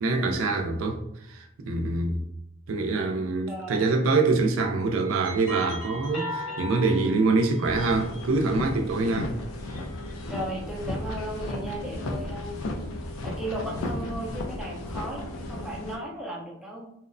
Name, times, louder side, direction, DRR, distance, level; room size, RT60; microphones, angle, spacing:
voice 1, 0.0-1.0 1.3-2.2 2.7-9.3, right 3 dB, 75° right, 0.4 m, -25 dB
voice 2, 3.5-3.8 10.3-12.8 13.2-16.9, right 1 dB, ahead, 0.4 m, -36 dB
sound 1, 3.7-4.0 4.7-8.9 9.4-10.5, left 1 dB, 65° left, 0.8 m, -40 dB
sound 2, 7.6-16.0, left 1 dB, 80° left, 0.4 m, -34 dB
2.7 x 2.0 x 2.5 m
head